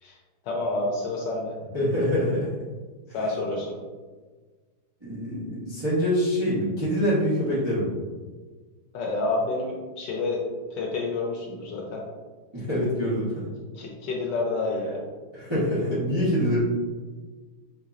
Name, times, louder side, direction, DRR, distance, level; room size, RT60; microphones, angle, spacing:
voice 1, 0.4-1.5 3.1-3.7 8.9-10.4 10.7-12.0 13.7-15.0, left 2 dB, 75° left, -1 dB, 1.1 m, -29 dB
voice 2, 1.7-2.5 5.0-7.9 12.5-13.5 15.3-16.6, equal, 30° right, -10 dB, 0.5 m, -25 dB
4.5 x 2.9 x 2.5 m, 1.4 s
omnidirectional pair, 2.3 m